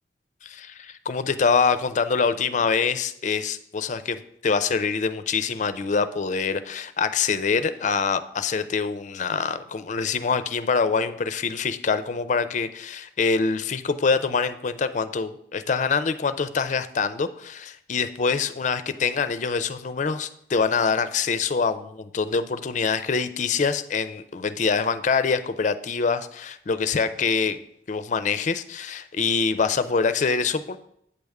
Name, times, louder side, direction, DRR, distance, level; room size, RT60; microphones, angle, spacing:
voice 1, 0.4-27.6 27.9-30.8, left 5 dB, 45° left, 12 dB, 0.4 m, -25 dB
8.5 x 3.5 x 6.5 m, 0.72 s
head